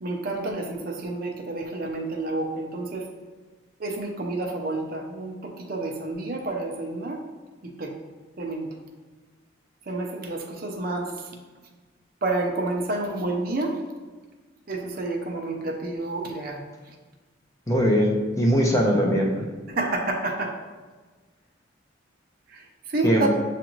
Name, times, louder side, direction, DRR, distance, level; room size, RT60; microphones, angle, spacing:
voice 1, 0.0-3.0 3.8-7.2 7.6-7.9 8.4-8.7 9.9-11.3 12.2-13.7 14.7-16.6 19.7-20.5 22.5-23.3, right 2 dB, 45° right, 2 dB, 0.6 m, -29 dB
voice 2, 17.7-19.4 23.0-23.3, equal, 15° left, 0 dB, 0.5 m, -21 dB
7.1 x 2.5 x 3.0 m, 1.4 s
head